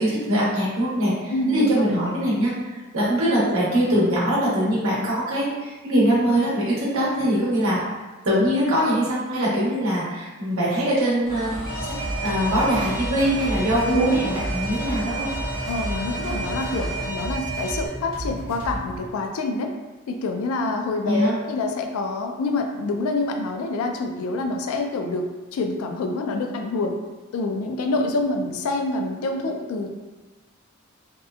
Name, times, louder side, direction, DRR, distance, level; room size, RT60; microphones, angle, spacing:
voice 1, 0.0-7.8 8.2-11.6 12.2-15.3 21.0-21.3, equal, 70° right, -7 dB, 0.9 m, -22 dB
voice 2, 1.3-1.9 13.9-14.2 15.7-19.7 20.1-27.0 27.3-29.9, left 2 dB, 85° left, 4 dB, 0.3 m, -26 dB
sound 1, 11.3-17.1, left 1 dB, ahead, 0.7 m, -35 dB
sound 2, 11.5-19.1, right 1 dB, 65° left, 1.3 m, -33 dB
Alarm, 11.7-17.9, right 4 dB, 25° right, 0.8 m, -33 dB
2.8 x 2.1 x 2.3 m, 1.2 s
head